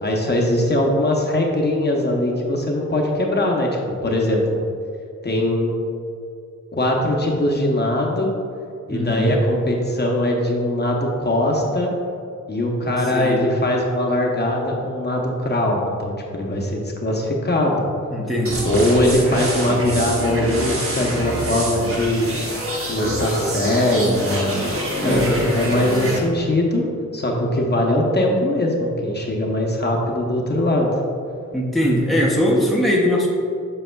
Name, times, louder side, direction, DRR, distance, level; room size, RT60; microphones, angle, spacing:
voice 1, 0.0-4.6 5.2-5.7 6.7-8.3 8.9-11.9 12.5-17.8 18.6-22.3 22.8-24.5 25.0-26.8 27.1-30.9, left 1 dB, 35° left, -1 dB, 0.7 m, -21 dB
voice 2, 8.9-9.4 13.1-13.4 18.1-18.7 25.0-25.5 31.5-33.3, equal, ahead, -3 dB, 0.6 m, -20 dB
sound 1, 18.4-26.2, right 1 dB, 50° right, 1.0 m, -26 dB
7.6 x 5.9 x 2.2 m, 2.5 s
wide cardioid pair, 170°, 30 cm